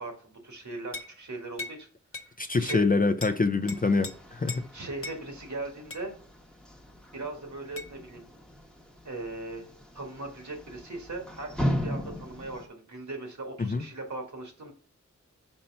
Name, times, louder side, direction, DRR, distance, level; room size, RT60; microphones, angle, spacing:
voice 1, 0.0-1.9 2.3-2.8 4.7-6.1 7.1-8.2 9.0-9.7 9.9-14.7, right 2 dB, 75° right, 1.7 m, -39 dB
sound 1, 0.9-1.2 1.6-1.8 2.1-2.3 2.7-2.9 3.2-3.4 3.7-4.1 4.5-4.7 5.0-5.2 5.9-6.1 7.8-7.9, left 3 dB, 45° left, 0.8 m, -38 dB
voice 2, 2.4-4.7 13.6-13.8, left 3 dB, 30° left, 0.5 m, -25 dB
sound 2, 3.6-12.7, equal, 5° left, 1.0 m, -38 dB
5.5 x 4.3 x 5.3 m
wide cardioid pair, 75°, 30 cm